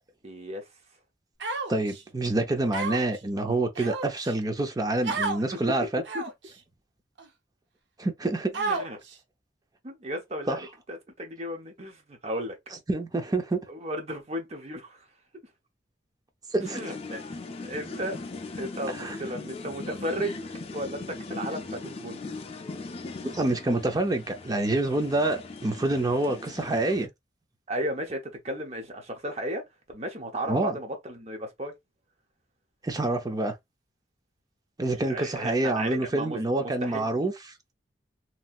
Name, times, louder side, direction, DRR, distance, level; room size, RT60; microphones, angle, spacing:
voice 1, 0.2-0.6 5.7-5.8 6.1-6.2 8.6-9.0 9.8-12.6 13.7-15.0 16.7-17.2 17.6-18.2 18.5-20.4 20.7-22.2 27.7-29.6 29.9-31.7 34.8-37.1, equal, 35° right, 0.9 m, -34 dB
Human voice, 1.4-2.0 2.7-3.2 3.7-4.3 5.0-5.4 6.0-6.5 7.2-7.3 8.5-9.1, right 3 dB, 70° right, 0.6 m, -31 dB
voice 2, 1.7-6.0 8.0-8.6 10.5-10.6 12.9-13.6 16.5-16.8 19.0-19.2 23.2-27.1 30.5-30.8 32.8-33.5 34.8-37.3, right 2 dB, 20° right, 0.5 m, -27 dB
sound 1, 16.6-27.1, left 3 dB, 35° left, 0.5 m, -39 dB
3.1 x 2.7 x 2.3 m
head